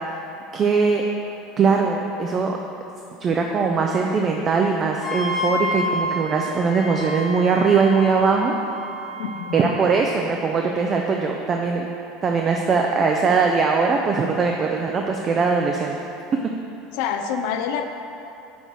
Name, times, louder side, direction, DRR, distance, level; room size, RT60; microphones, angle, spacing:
voice 1, 0.5-1.0 1.6-2.6 3.2-8.5 9.5-11.9 12.2-16.0 16.3-16.4, right 5 dB, 35° right, 2 dB, 0.5 m, -21 dB
Wind instrument woodwind instrument, 5.0-10.0, left 1 dB, 30° left, 0.9 m, -30 dB
voice 2, 9.2-9.7 16.9-17.9, left 7 dB, 70° left, 6 dB, 0.4 m, -27 dB
5.9 x 3.9 x 6.1 m, 2.8 s
hypercardioid pair, 90°, 0 cm